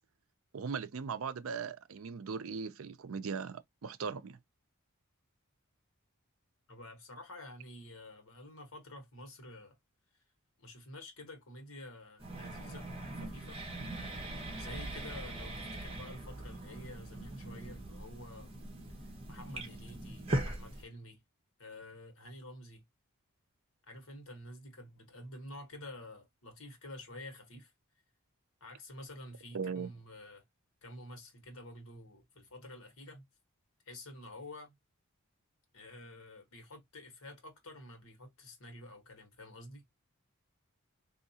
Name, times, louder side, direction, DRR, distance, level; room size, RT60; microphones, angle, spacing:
voice 1, 0.5-4.4 29.5-29.9, right 5 dB, 70° right, 0.5 m, -39 dB
voice 2, 6.7-9.8 10.6-13.6 14.6-18.5 19.3-21.2 21.6-22.8 23.9-27.7 28.6-30.4 30.8-33.2 33.8-34.8 35.7-39.8, left 1 dB, 70° left, 1.3 m, -49 dB
sound 1, 12.2-20.8, right 1 dB, 25° right, 1.3 m, -41 dB
3.8 x 2.7 x 2.7 m
head